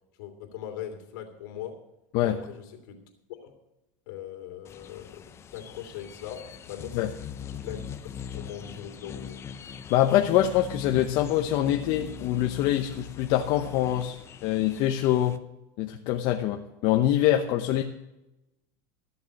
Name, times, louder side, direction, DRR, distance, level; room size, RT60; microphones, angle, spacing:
voice 1, 0.2-1.8 2.2-3.0 3.4-3.5 4.1-9.4 17.6-17.7, left 10 dB, 75° left, 4 dB, 3.0 m, -41 dB
sound 1, 4.6-15.4, left 7 dB, 25° left, 0.7 m, -41 dB
voice 2, 9.9-14.2 14.4-15.4 15.8-17.8, left 12 dB, 55° left, 4 dB, 1.0 m, -24 dB
14.0 x 7.0 x 7.8 m, 0.94 s
supercardioid pair, 135°, 10 cm